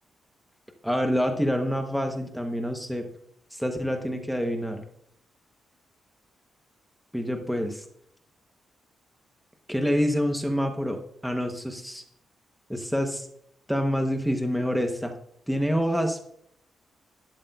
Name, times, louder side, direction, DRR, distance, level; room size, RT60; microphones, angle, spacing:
voice 1, 0.8-3.1 3.5-4.8 7.1-7.7 9.7-12.0 12.7-13.3 13.7-15.1 15.5-16.3, equal, ahead, 4 dB, 0.9 m, -27 dB
12.0 x 11.5 x 2.3 m, 0.67 s
wide cardioid pair, 170°, 0 cm